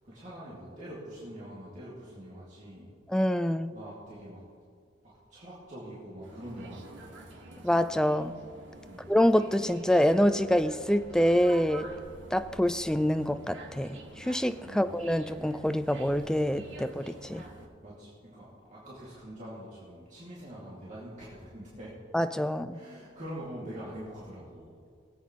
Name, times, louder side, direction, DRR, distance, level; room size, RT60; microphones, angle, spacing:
voice 1, 0.0-2.9 3.7-4.4 5.0-7.2 8.8-9.1 14.6-14.9 17.8-21.9 22.7-24.7, equal, 40° right, -8 dB, 2.4 m, -44 dB
voice 2, 3.1-3.8 7.6-8.3 9.1-11.9 12.3-17.4 22.1-22.8, equal, 5° left, 11 dB, 0.3 m, -26 dB
sound 1, 6.2-17.7, right 2 dB, 70° right, 1.8 m, -48 dB
22.0 x 8.5 x 3.1 m, 2.1 s
head